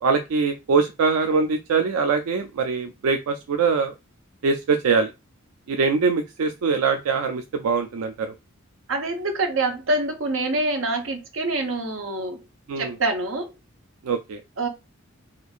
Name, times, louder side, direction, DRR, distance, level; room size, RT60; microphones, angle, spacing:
voice 1, 0.0-3.9 4.4-5.1 5.7-8.3 12.7-13.0 14.0-14.4, right 4 dB, 85° right, 0.4 m, -23 dB
voice 2, 8.9-12.4 12.8-13.5 14.6-14.7, right 2 dB, 65° right, 0.8 m, -25 dB
4.3 x 2.5 x 2.4 m
head